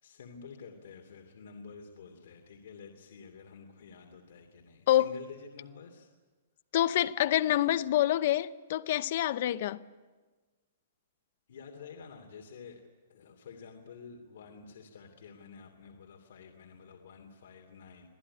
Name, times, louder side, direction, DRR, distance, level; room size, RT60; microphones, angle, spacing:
voice 1, 0.0-6.1 11.5-12.8 13.1-18.1, left 5 dB, 65° left, 2.8 m, -49 dB
voice 2, 6.7-9.8, left 13 dB, 45° left, 0.8 m, -26 dB
25.5 x 16.5 x 9.8 m
hypercardioid pair, 170°, 0 cm